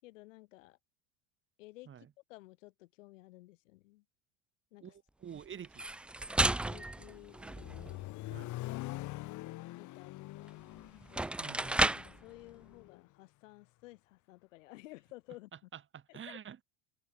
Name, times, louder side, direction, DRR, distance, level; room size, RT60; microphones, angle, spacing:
voice 1, 0.0-0.8 1.6-1.9 2.3-4.0 4.7-4.9 6.6-7.4 9.7-10.7 11.1-11.3 12.0-15.7 16.1-16.4, left 20 dB, 80° left, 6.7 m, -54 dB
voice 2, 4.8-5.9 8.3-8.5 11.4-11.8 15.7-16.6, right 8 dB, 30° right, 7.5 m, -48 dB
sound 1, 5.6-8.0 10.5-10.6 11.0-12.2, right 2 dB, 5° right, 0.3 m, -33 dB
Accelerating revving vroom, 7.0-13.0, left 18 dB, 50° left, 1.9 m, -44 dB
supercardioid pair, 115°, 37 cm